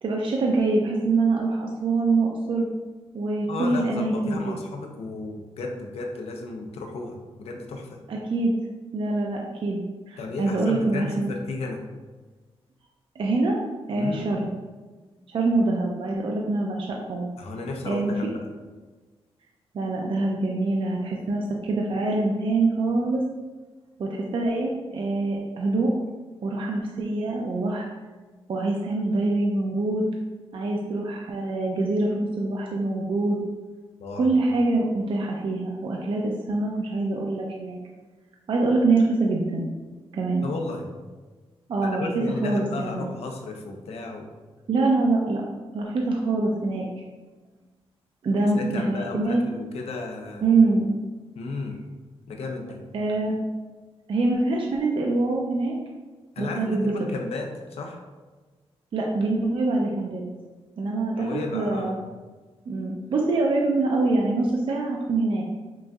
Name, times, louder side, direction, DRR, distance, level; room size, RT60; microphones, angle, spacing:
voice 1, 0.0-2.6 3.1-4.6 8.1-8.5 8.9-11.3 13.2-13.6 13.9-14.5 15.3-17.3 17.9-18.1 19.7-23.2 24.0-25.9 26.4-27.9 28.5-30.1 30.5-33.4 34.1-37.8 38.5-39.7 40.1-40.5 41.7-42.1 42.4-43.1 44.7-45.4 45.7-46.9 48.2-49.4 50.4-50.9 52.9-53.4 54.1-55.8 56.4-56.9 58.9-60.2 60.8-62.0 62.7-65.5, right 3 dB, 55° right, -1 dB, 0.5 m, -24 dB
voice 2, 3.5-7.9 10.2-11.9 13.9-14.2 17.4-18.4 34.0-34.3 40.4-40.8 41.8-44.3 48.4-50.5 51.4-51.8 52.3-52.8 56.4-58.0 61.2-62.0, left 3 dB, 80° left, 2 dB, 0.6 m, -33 dB
5.9 x 2.6 x 2.3 m, 1.3 s
wide cardioid pair, 115°, 10 cm